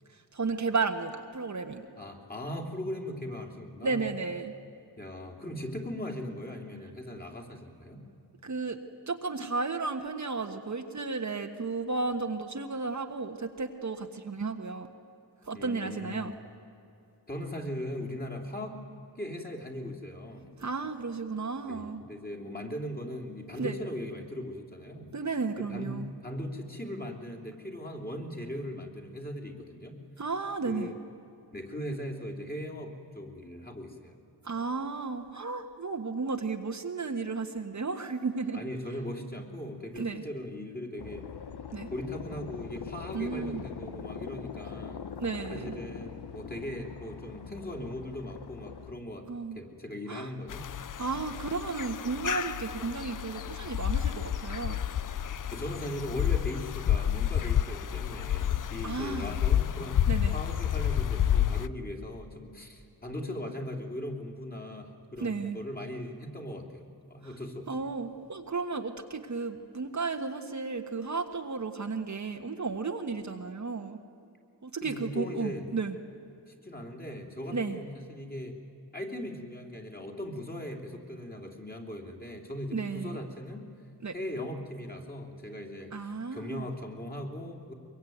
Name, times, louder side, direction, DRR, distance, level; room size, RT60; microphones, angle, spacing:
voice 1, 0.1-1.8 3.8-4.5 8.4-8.8 9.1-14.9 15.5-16.3 20.6-22.0 23.6-23.8 25.1-26.1 30.2-30.9 34.4-38.6 39.9-40.2 41.7-41.9 43.1-43.6 45.2-45.7 49.3-49.6 50.1-50.3 51.0-54.8 58.8-59.3 60.1-60.3 65.2-65.6 67.2-67.3 67.7-74.0 74.6-76.0 77.5-77.8 82.7-83.2 84.0-84.1 85.9-86.7, right 4 dB, 45° right, 5 dB, 1.4 m, -33 dB
voice 2, 2.0-4.0 5.0-8.0 15.5-16.3 17.3-18.8 19.2-20.5 21.7-25.1 25.6-30.0 30.6-31.0 31.5-34.2 38.5-41.2 41.9-45.0 45.5-49.3 49.5-50.7 55.5-60.0 60.3-67.9 74.8-75.6 76.5-78.6 78.9-83.6 84.1-85.9 86.3-87.7, left 1 dB, 20° left, 2 dB, 3.2 m, -39 dB
sound 1, 41.0-48.9, left 6 dB, 65° left, 1.3 m, -42 dB
sound 2, 50.5-61.7, left 10 dB, 50° left, 0.6 m, -30 dB
23.0 x 23.0 x 9.3 m, 2.7 s
wide cardioid pair, 95°, 42 cm